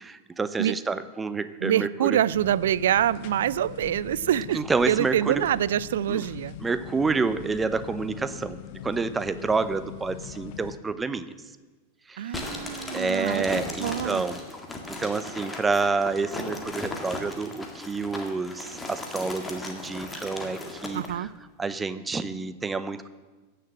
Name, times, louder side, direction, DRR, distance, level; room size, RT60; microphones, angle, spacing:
voice 1, 0.0-2.2 4.5-5.5 6.1-6.2 6.6-8.6 8.8-11.3 12.1-12.3 12.9-14.4 14.9-21.3 21.6-23.1, right 4 dB, 15° right, 14 dB, 0.6 m, -28 dB
voice 2, 1.6-4.6 4.9-6.5 12.2-14.2 20.9-21.3, right 11 dB, 60° right, 20 dB, 0.3 m, -25 dB
sound 1, 2.3-10.8, left 10 dB, 45° left, 0.8 m, -42 dB
sound 2, 12.3-21.1, left 2 dB, 10° left, 1.9 m, -37 dB
15.5 x 6.7 x 7.5 m, 1.3 s
figure-of-eight pair, 90°, 0 cm